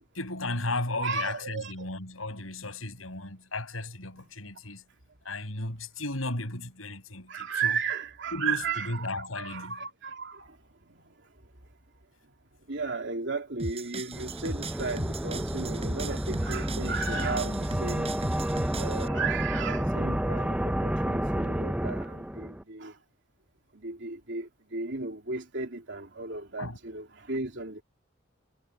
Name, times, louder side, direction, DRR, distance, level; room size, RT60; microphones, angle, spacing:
voice 1, 0.1-4.8 5.2-7.8 8.3-9.7 26.6-26.8, left 2 dB, 90° left, 8.0 m, -35 dB
voice 2, 1.0-1.9 4.1-4.3 7.3-11.3 12.7-18.1 18.7-23.0 23.7-27.8, right 4 dB, 60° right, 3.3 m, -35 dB
sound 1, 13.6-19.1, right 2 dB, 30° right, 5.2 m, -37 dB
sound 2, 14.1-22.6, right 1 dB, 5° right, 0.5 m, -30 dB
head